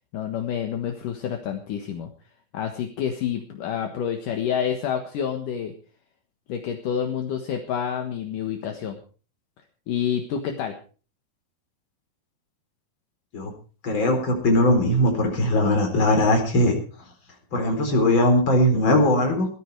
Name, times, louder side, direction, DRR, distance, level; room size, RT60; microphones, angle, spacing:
voice 1, 0.1-2.1 2.5-5.7 6.5-9.0 9.9-10.7, left 8 dB, 65° left, 4 dB, 2.9 m, -28 dB
voice 2, 13.8-16.8 17.5-19.5, left 1 dB, 30° left, 3 dB, 4.5 m, -20 dB
17.5 x 13.0 x 4.7 m, 0.39 s
omnidirectional pair, 4.2 m